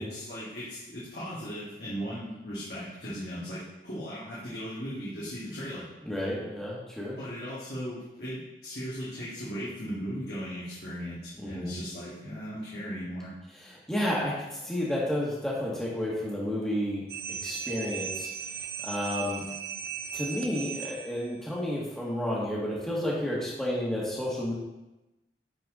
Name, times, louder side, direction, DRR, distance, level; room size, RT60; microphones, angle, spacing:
voice 1, 0.0-5.9 7.2-13.3, equal, 65° left, -9 dB, 1.9 m, -37 dB
voice 2, 6.0-7.2 11.4-11.7 13.9-17.0 17.4-18.3 18.8-19.4 20.1-24.5, left 1 dB, 5° left, -6 dB, 1.7 m, -31 dB
sound 1, 17.1-21.4, right 7 dB, 60° right, 0.5 m, -37 dB
9.6 x 4.5 x 3.8 m, 1.0 s
head